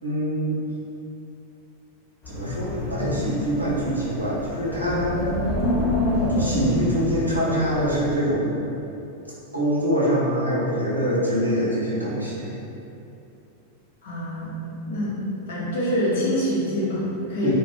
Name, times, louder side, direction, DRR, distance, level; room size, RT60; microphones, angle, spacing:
voice 1, 0.0-0.6 2.3-5.2 6.3-8.7 9.5-12.5 17.4-17.5, equal, 85° right, -7 dB, 0.6 m, -24 dB
Wind, 2.2-8.1, left 1 dB, 35° left, 1.0 m, -27 dB
voice 2, 14.0-14.6 14.9-15.2 15.5-17.5, equal, 60° left, -7 dB, 0.7 m, -25 dB
2.4 x 2.1 x 3.3 m, 2.7 s
figure-of-eight pair, 90°, 0 cm